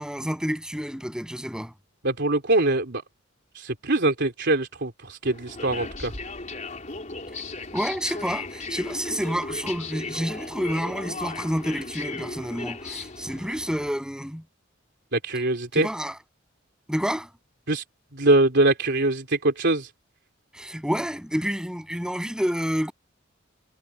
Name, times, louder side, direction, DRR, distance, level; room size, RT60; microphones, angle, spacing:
voice 1, 0.0-1.7 7.3-7.4 7.7-14.4 15.7-16.2 16.9-17.3 20.5-22.9, equal, 5° right, 7.4 m, -29 dB
voice 2, 2.0-3.0 3.5-6.1 15.1-15.9 17.7-17.8 18.1-19.9, right 2 dB, 60° right, 3.7 m, -23 dB
sound 1, 5.2-13.9, left 3 dB, 40° left, 3.9 m, -36 dB
head